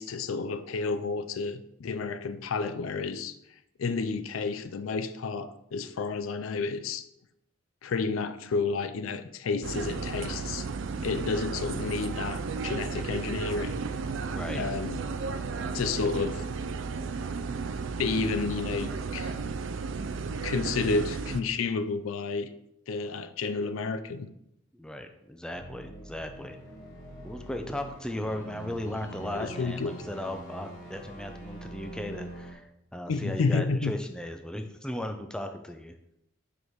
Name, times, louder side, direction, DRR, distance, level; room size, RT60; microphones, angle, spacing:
voice 1, 0.0-3.4 3.8-7.0 7.8-10.7 11.0-13.7 14.5-15.0 15.7-16.4 18.0-19.3 20.4-22.5 22.9-24.3 29.3-29.9 33.1-33.9, left 4 dB, 90° left, 0.4 m, -30 dB
sound 1, 9.6-21.4, right 4 dB, 65° right, 0.4 m, -34 dB
voice 2, 10.9-11.3 14.2-14.6 24.7-26.6 27.2-36.0, left 1 dB, 5° left, 0.4 m, -37 dB
sound 2, 25.5-32.5, right 1 dB, 40° left, 1.4 m, -44 dB
5.0 x 4.1 x 4.6 m
head